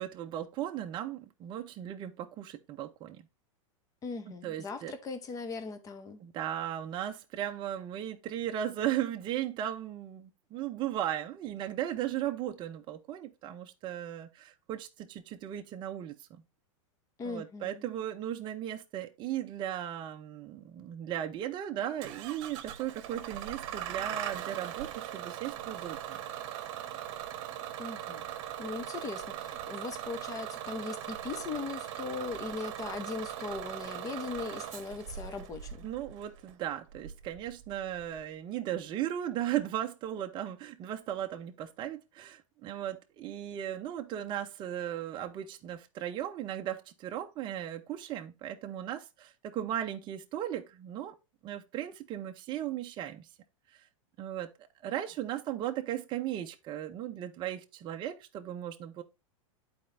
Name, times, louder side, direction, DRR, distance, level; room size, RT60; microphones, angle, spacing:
voice 1, 0.0-3.3 4.4-4.9 6.2-16.4 17.2-26.2 35.8-51.2 51.4-53.2 54.2-54.5 54.8-59.0, right 11 dB, 30° right, 0.7 m, -36 dB
voice 2, 4.0-6.2 17.2-17.8 27.8-28.3 28.6-35.9, left 4 dB, 20° left, 0.9 m, -39 dB
Bus / Engine starting, 22.0-38.2, right 11 dB, 50° right, 1.0 m, -40 dB
11.5 x 4.3 x 2.6 m
supercardioid pair, 140°, 17 cm